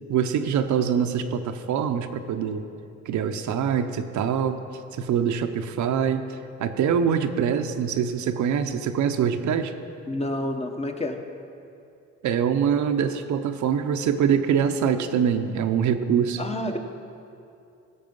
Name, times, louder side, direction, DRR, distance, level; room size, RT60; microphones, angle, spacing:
voice 1, 0.1-2.7 3.1-4.6 4.9-6.2 6.6-9.7 12.2-16.4, right 7 dB, 70° right, 7 dB, 0.8 m, -24 dB
voice 2, 10.1-11.2 16.4-16.8, left 1 dB, 20° left, 5 dB, 0.9 m, -29 dB
15.5 x 6.9 x 5.4 m, 2.6 s
cardioid pair, 90°, 30 cm